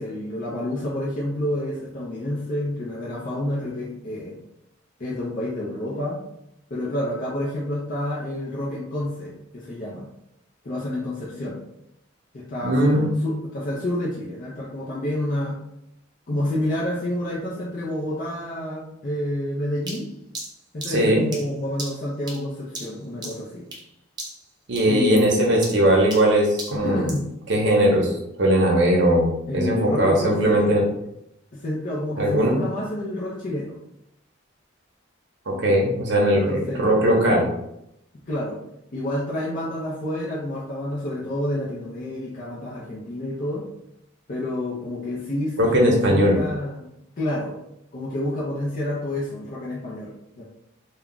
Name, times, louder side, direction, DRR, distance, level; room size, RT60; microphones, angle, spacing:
voice 1, 0.0-4.4 5.0-6.2 6.7-10.1 10.6-11.6 12.3-15.6 16.3-20.1 20.7-23.6 24.9-25.7 26.7-27.3 29.5-30.7 31.5-33.8 36.3-36.9 38.3-38.6 38.9-43.6 44.3-46.9 47.2-47.5 47.9-50.4, left 1 dB, 45° left, -6 dB, 0.5 m, -29 dB
voice 2, 12.6-13.1 20.9-21.2 24.7-27.1 27.5-28.1 28.4-30.9 32.2-32.6 35.5-37.4 45.6-46.4, right 1 dB, 60° right, -1 dB, 0.7 m, -19 dB
sound 1, 19.9-23.9 24.2-24.5 24.8-27.3, right 2 dB, 20° right, 0.5 m, -37 dB
2.3 x 2.1 x 3.7 m, 0.80 s
head